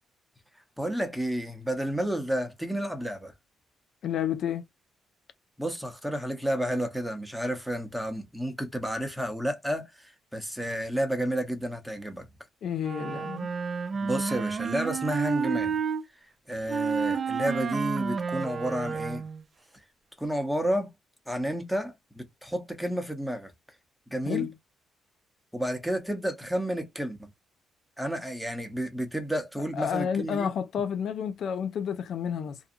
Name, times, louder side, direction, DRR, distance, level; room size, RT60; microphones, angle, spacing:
voice 1, 0.8-3.3 5.6-9.9 10.3-12.3 14.0-15.8 16.5-19.2 20.2-20.9 21.3-23.5 24.1-24.5 25.5-27.3 28.0-30.5, right 1 dB, ahead, 0.8 m, -31 dB
voice 2, 4.0-4.7 12.6-13.5 24.3-24.5 29.6-32.6, left 8 dB, 65° left, 0.4 m, -30 dB
Wind instrument woodwind instrument, 12.8-16.0 16.7-19.4, right 6 dB, 40° right, 0.4 m, -30 dB
2.6 x 2.3 x 2.6 m
cardioid pair, 90°, 0 cm